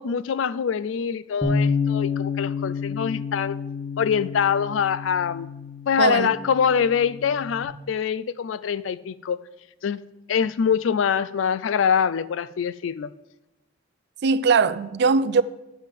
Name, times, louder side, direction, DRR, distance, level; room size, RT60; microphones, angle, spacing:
voice 1, 0.0-3.6 4.0-5.5 5.9-9.4 9.8-10.0 10.3-13.1, left 7 dB, 75° left, 0.4 m, -24 dB
Bass guitar, 1.4-7.7, left 5 dB, 10° left, 1.4 m, -29 dB
voice 2, 6.0-6.3 14.2-15.4, right 4 dB, 60° right, 0.4 m, -20 dB
9.3 x 7.4 x 5.2 m
head